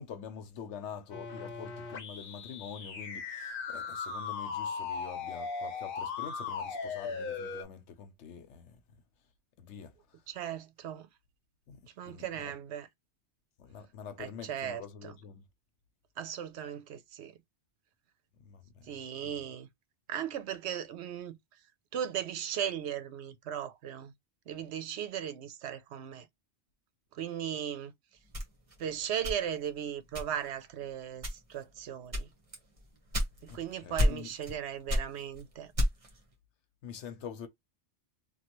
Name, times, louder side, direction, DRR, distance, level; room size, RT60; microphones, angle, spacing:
voice 1, 0.0-8.8 9.6-9.9 11.7-12.5 13.6-15.4 18.4-18.9 19.2-19.5 33.5-34.3 36.8-37.5, left 7 dB, 90° left, 1.0 m, -46 dB
sound 1, 1.1-7.6, left 5 dB, 55° left, 0.9 m, -38 dB
voice 2, 10.3-11.1 12.0-12.9 14.2-15.2 16.2-17.3 18.9-19.7 20.1-21.4 21.9-24.1 24.5-26.3 27.1-27.9 28.8-32.3 33.4-35.7, right 9 dB, 75° right, 0.9 m, -37 dB
sound 2, 28.3-29.7 30.1-30.6 31.2-31.6 32.1-33.6 34.0-34.6 34.9-36.2, left 1 dB, 30° right, 1.1 m, -30 dB
3.0 x 2.4 x 2.9 m
omnidirectional pair, 1.2 m